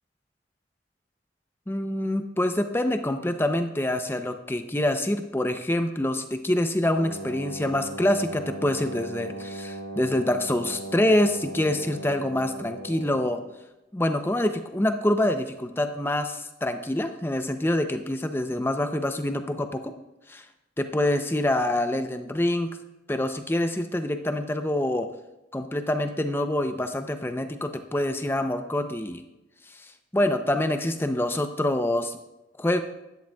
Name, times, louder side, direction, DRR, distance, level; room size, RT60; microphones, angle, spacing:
voice 1, 1.7-13.4 13.9-19.9 20.3-20.4 20.8-22.7 23.1-25.1 25.5-29.2 29.7-32.2 32.6-32.8, left 1 dB, 10° left, 7 dB, 0.5 m, -26 dB
Wind instrument woodwind instrument, 6.8-13.4, right 1 dB, 55° left, 2.9 m, -37 dB
11.5 x 10.0 x 2.3 m, 0.98 s
head